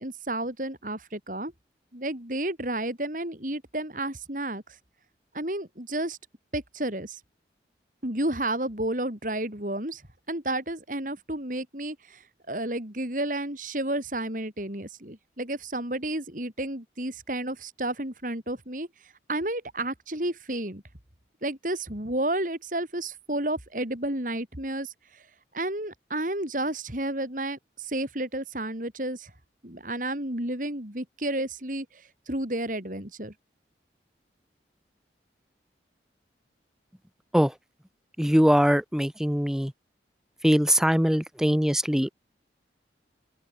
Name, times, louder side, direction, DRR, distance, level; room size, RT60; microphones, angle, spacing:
voice 1, 0.0-1.5 1.9-4.6 5.3-6.2 6.5-7.2 8.0-10.0 10.3-12.2 12.5-18.9 19.3-20.8 21.4-25.2 25.5-29.3 29.6-33.3, right 1 dB, 45° right, 4.3 m, -31 dB
voice 2, 38.2-39.7 40.4-42.1, equal, 5° right, 0.7 m, -22 dB
open air
head